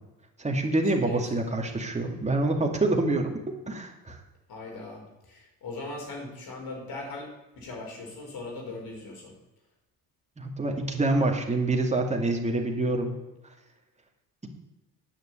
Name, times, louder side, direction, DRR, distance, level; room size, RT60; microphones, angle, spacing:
voice 1, 0.4-3.4 3.7-4.2 10.4-13.1, right 2 dB, 15° right, 2 dB, 2.3 m, -26 dB
voice 2, 1.1-1.4 4.5-7.3 7.6-9.3, left 2 dB, 60° left, 0 dB, 5.0 m, -39 dB
9.5 x 6.7 x 8.8 m, 1.1 s
supercardioid pair, 85°, 42 cm